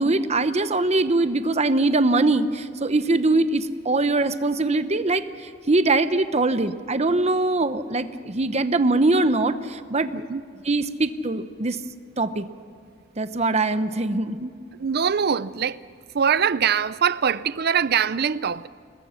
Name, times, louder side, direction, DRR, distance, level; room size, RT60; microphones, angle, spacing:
voice 1, 0.0-5.2 5.7-10.2 10.7-11.8 12.2-12.5 13.2-14.5, right 2 dB, 35° right, 0.9 m, -22 dB
voice 2, 14.8-15.8 16.1-18.7, right 7 dB, 55° right, 0.6 m, -23 dB
28.5 x 20.5 x 5.8 m
head